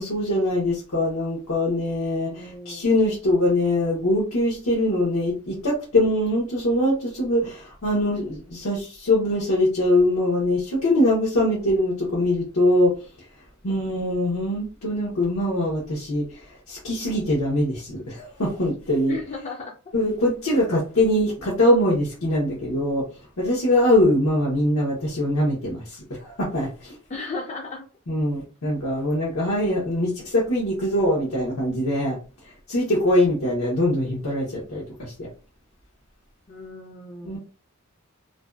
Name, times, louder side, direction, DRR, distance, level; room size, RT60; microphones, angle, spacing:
voice 1, 0.0-12.9 13.6-19.2 19.9-23.1 23.4-27.0 28.1-32.2 32.7-35.3 37.2-37.4, left 1 dB, 85° left, 0.8 m, -23 dB
voice 2, 2.3-2.9 19.1-19.7 27.1-27.8 36.5-37.4, left 3 dB, 30° left, 0.4 m, -35 dB
2.5 x 2.2 x 2.2 m
head